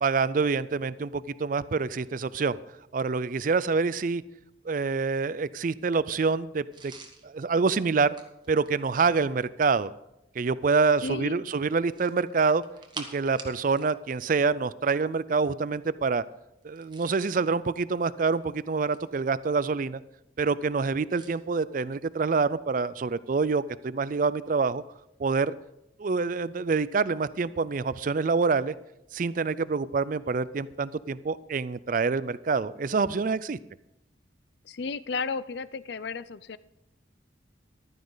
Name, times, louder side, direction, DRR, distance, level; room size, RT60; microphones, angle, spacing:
voice 1, 0.0-2.6 2.9-4.2 4.6-6.9 7.2-8.1 8.5-9.9 10.4-12.6 13.0-16.2 16.6-20.0 20.4-24.8 25.2-25.5 26.0-28.8 29.1-33.6, right 4 dB, 45° right, 17 dB, 0.4 m, -26 dB
sound 1, 6.7-9.4 11.8-14.0 14.2-14.4 16.6-17.3 18.1-19.2 21.1-21.4, right 4 dB, 25° right, 1.2 m, -47 dB
voice 2, 11.0-11.4 34.6-36.6, left 4 dB, 60° left, 17 dB, 0.5 m, -33 dB
14.5 x 12.5 x 4.0 m, 0.88 s
head